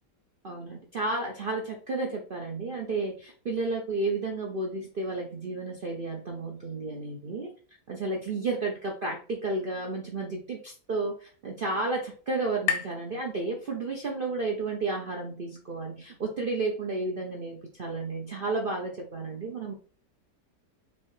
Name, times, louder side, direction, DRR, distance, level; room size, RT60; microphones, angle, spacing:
voice 1, 0.4-7.5 7.9-19.7, right 3 dB, 60° right, 0 dB, 0.5 m, -32 dB
sound 1, 10.3-14.1, left 8 dB, 70° left, 1.0 m, -38 dB
5.2 x 2.8 x 3.1 m, 0.40 s
omnidirectional pair, 1.8 m